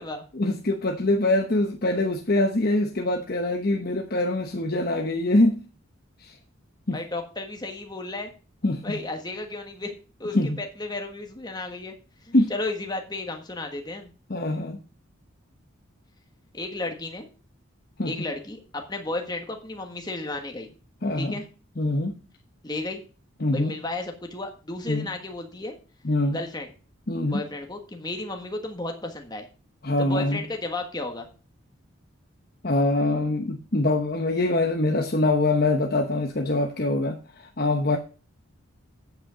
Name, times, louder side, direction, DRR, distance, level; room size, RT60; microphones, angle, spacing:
voice 1, 0.4-5.6 6.2-6.3 6.9-7.0 8.6-9.0 10.3-10.6 12.3-12.5 14.3-14.8 18.0-18.1 21.0-21.4 21.8-22.1 23.4-23.7 24.9-25.1 26.0-26.4 27.1-27.4 29.8-30.4 32.6-38.0, left 2 dB, 45° left, 4 dB, 1.0 m, -24 dB
voice 2, 6.9-8.3 8.8-11.9 12.2-14.1 16.5-17.3 18.0-20.7 21.2-21.4 22.6-23.0 23.5-25.8 26.3-26.7 27.3-29.5 30.0-31.3, left 2 dB, 20° left, 4 dB, 1.3 m, -33 dB
8.5 x 8.2 x 5.0 m, 0.36 s
head